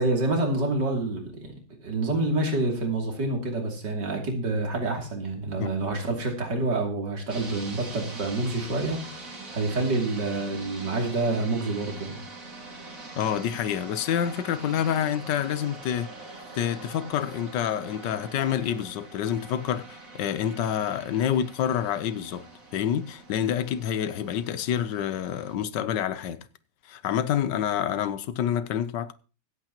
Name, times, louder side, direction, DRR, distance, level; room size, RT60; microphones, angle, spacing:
voice 1, 0.0-1.5 1.8-9.2 9.5-12.2, right 2 dB, 70° right, 3.4 m, -27 dB
sound 1, 7.3-25.6, right 3 dB, 50° right, 2.6 m, -43 dB
voice 2, 13.2-22.5 22.7-26.5 26.9-29.1, left 9 dB, 75° left, 1.4 m, -28 dB
24.5 x 8.3 x 3.0 m
omnidirectional pair, 1.9 m